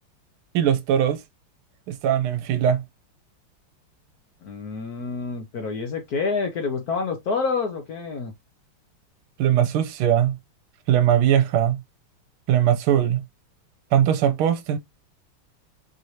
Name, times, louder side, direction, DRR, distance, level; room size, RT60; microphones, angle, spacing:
voice 1, 0.5-1.2 1.9-2.8 9.4-10.4 10.9-11.8 12.5-13.2 13.9-14.8, right 10 dB, 80° right, 1.5 m, -20 dB
voice 2, 4.4-8.3, left 4 dB, 60° left, 1.1 m, -28 dB
4.8 x 3.1 x 2.7 m
omnidirectional pair, 2.4 m